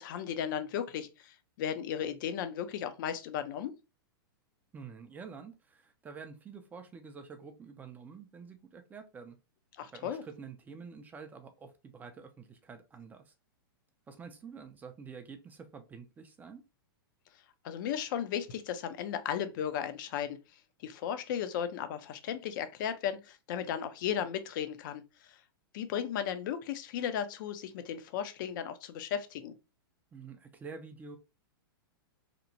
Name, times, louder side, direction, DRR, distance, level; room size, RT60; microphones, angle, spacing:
voice 1, 0.0-3.7 9.8-10.2 17.6-20.4 20.8-25.4 25.7-29.5, left 9 dB, 55° left, 0.5 m, -35 dB
voice 2, 4.7-9.4 9.9-13.3 14.1-16.6 30.1-31.2, right 5 dB, 15° right, 0.4 m, -48 dB
2.8 x 2.1 x 2.6 m
hypercardioid pair, 125°, 12 cm